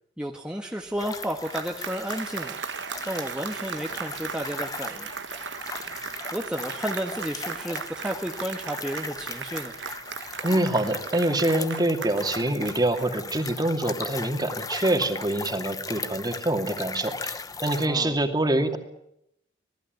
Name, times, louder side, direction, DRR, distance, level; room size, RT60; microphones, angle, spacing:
voice 1, 0.2-2.6 3.0-5.6 6.3-9.7 17.8-18.2, equal, 5° right, 1 dB, 1.5 m, -32 dB
Applause, 0.9-13.5, right 6 dB, 70° right, 1.2 m, -37 dB
sound 1, 1.0-17.9, left 4 dB, 20° left, 1.1 m, -38 dB
voice 2, 10.4-18.8, right 1 dB, 20° right, 5 dB, 2.6 m, -25 dB
27.0 x 19.0 x 9.5 m, 0.79 s
head